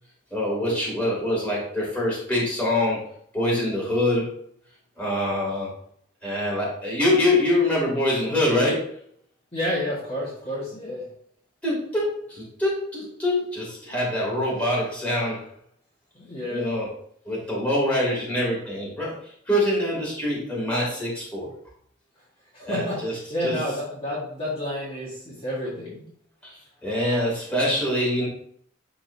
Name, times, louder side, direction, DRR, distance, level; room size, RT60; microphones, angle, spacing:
voice 1, 0.3-3.1 3.3-4.3 5.0-5.7 6.2-8.9 11.6-15.5 16.5-16.9 17.2-19.1 19.5-21.5 22.6-23.1 23.4-23.6 26.4-28.3, left 1 dB, 10° left, -6 dB, 2.6 m, -24 dB
voice 2, 9.5-11.1 16.1-16.7 22.5-26.1, left 1 dB, 30° left, -8 dB, 1.6 m, -30 dB
10.5 x 3.8 x 2.7 m, 0.64 s
head